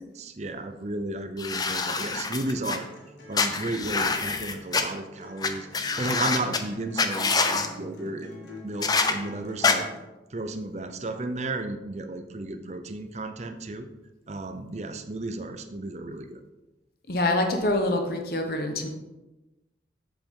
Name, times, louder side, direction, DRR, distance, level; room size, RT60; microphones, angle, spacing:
voice 1, 0.2-2.9 3.3-8.3 8.6-9.9 10.3-13.9 14.3-16.4, right 2 dB, 35° right, 8 dB, 0.6 m, -33 dB
sound 1, 1.4-2.8 3.3-4.8 5.4-5.5 5.7-6.6 7.0-7.7 8.8-9.1 9.6-9.7, left 4 dB, 20° left, 0.5 m, -25 dB
sound 2, 2.0-10.0, left 2 dB, 70° left, 1.7 m, -45 dB
voice 2, 17.1-18.9, left 1 dB, 55° left, 4 dB, 1.0 m, -25 dB
7.6 x 7.2 x 3.7 m, 1.1 s
head